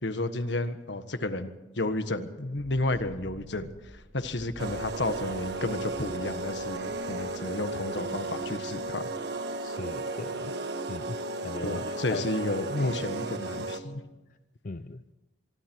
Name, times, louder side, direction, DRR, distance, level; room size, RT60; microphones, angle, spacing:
voice 1, 0.0-9.1 11.6-14.0, left 2 dB, 70° left, 10 dB, 1.5 m, -32 dB
sound 1, 2.6-9.4 9.7-9.8, equal, 85° left, 3.0 m, -51 dB
sound 2, 4.6-13.8, right 2 dB, 60° right, 1.6 m, -34 dB
voice 2, 9.6-10.5 10.9-11.2 11.4-12.3 12.6-13.0 14.6-15.0, left 3 dB, 45° left, 11 dB, 0.6 m, -38 dB
24.5 x 24.0 x 4.6 m, 1.1 s
head